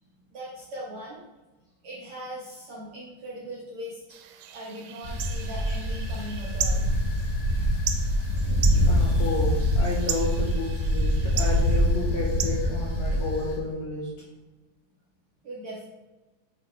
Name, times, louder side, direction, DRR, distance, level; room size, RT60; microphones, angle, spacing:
voice 1, 0.3-1.2 1.8-4.0 4.5-7.2 15.4-15.9, equal, 60° right, -6 dB, 1.6 m, -39 dB
sound 1, 4.1-13.5, right 10 dB, 90° right, 2.2 m, -38 dB
sound 2, 5.0-13.6, equal, 90° left, 2.6 m, -25 dB
voice 2, 8.9-14.1, left 2 dB, 70° left, -4 dB, 2.1 m, -31 dB
6.9 x 5.7 x 3.1 m, 1.2 s
omnidirectional pair, 3.6 m